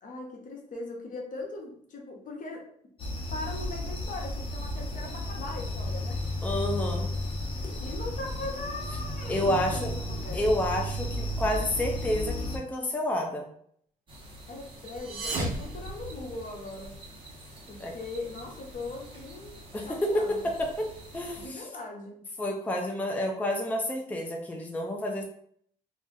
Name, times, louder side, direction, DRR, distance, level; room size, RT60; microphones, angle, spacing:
voice 1, 0.0-2.7 3.3-6.2 7.8-10.4 14.5-16.9 17.7-19.6 19.8-20.5 21.3-22.2, left 2 dB, 55° left, 0 dB, 0.9 m, -40 dB
sound 1, 3.0-12.6, left 1 dB, 30° left, 1.0 m, -33 dB
voice 2, 6.4-7.1 9.3-9.9 10.3-13.5 17.8-17.9 19.7-21.7 22.4-25.2, left 1 dB, 10° left, 1 dB, 0.5 m, -29 dB
sound 2, 14.1-21.5, right 1 dB, 30° right, 1.1 m, -48 dB
sound 3, 14.8-16.7, right 1 dB, 75° right, 1.2 m, -35 dB
2.6 x 2.4 x 3.8 m, 0.66 s
supercardioid pair, 80°, 17 cm